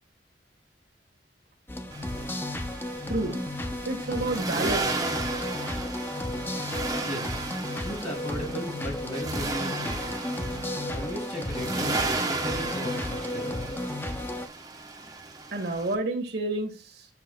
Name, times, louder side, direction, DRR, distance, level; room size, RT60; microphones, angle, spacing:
sound 1, 1.7-14.5, left 1 dB, 15° left, 0.6 m, -33 dB
Accelerating revving vroom, 1.9-15.9, right 3 dB, 20° right, 1.0 m, -34 dB
voice 1, 3.8-5.0 15.5-17.1, right 2 dB, 65° right, 3 dB, 1.5 m, -30 dB
voice 2, 7.0-7.4 7.8-10.2 10.9-13.8, left 1 dB, 40° left, 1 dB, 2.5 m, -37 dB
7.3 x 6.9 x 2.2 m, 0.35 s
head